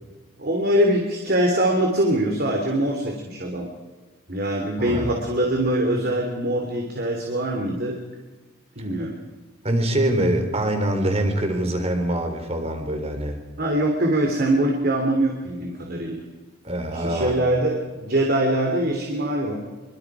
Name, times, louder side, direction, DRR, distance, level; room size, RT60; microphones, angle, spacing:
voice 1, 0.4-3.7 4.3-8.0 8.7-9.2 13.6-16.2 16.9-19.5, right 1 dB, 50° right, 2 dB, 3.3 m, -23 dB
voice 2, 9.6-13.4 16.6-17.3, right 1 dB, 30° right, 5 dB, 3.9 m, -24 dB
26.0 x 25.0 x 5.0 m, 1.3 s
head